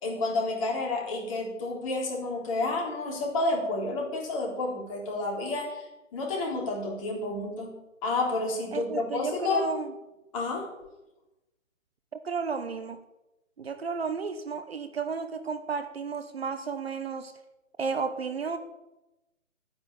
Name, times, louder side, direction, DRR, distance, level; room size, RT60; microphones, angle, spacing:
voice 1, 0.0-9.7 10.3-10.7, left 2 dB, 25° left, -1 dB, 3.6 m, -30 dB
voice 2, 8.7-9.9 12.1-13.0 13.6-17.3 17.8-18.6, right 5 dB, 50° right, 10 dB, 1.1 m, -33 dB
11.5 x 9.8 x 8.6 m, 0.98 s
figure-of-eight pair, 145°, 40 cm